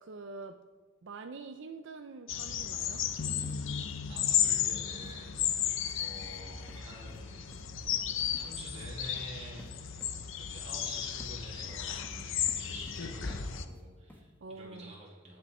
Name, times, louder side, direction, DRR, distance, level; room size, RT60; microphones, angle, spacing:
voice 1, 0.0-0.6 1.0-3.0 14.4-14.9, right 3 dB, 60° right, 7 dB, 0.5 m, -45 dB
sound 1, 2.3-13.7, left 9 dB, 65° left, 0.8 m, -34 dB
sound 2, 3.0-3.2 3.4-4.3 4.6-4.8 5.0-5.1 5.4-5.6 5.9-6.0 6.3-6.4 6.7-6.8 7.1-7.2 7.5-8.0 8.3-8.5 8.7-8.9 9.2-9.3 9.6-9.7 10.0-10.1 11.2-11.3 11.6-12.2 12.5-13.0 13.3-13.8 14.1-14.2, left 1 dB, 10° left, 1.2 m, -55 dB
sound 3, 3.2-6.4, left 3 dB, 50° left, 0.4 m, -41 dB
voice 2, 4.1-7.5 8.3-10.0 10.4-15.4, right 1 dB, 30° right, -4 dB, 2.3 m, -48 dB
18.0 x 6.6 x 4.3 m, 1.3 s
head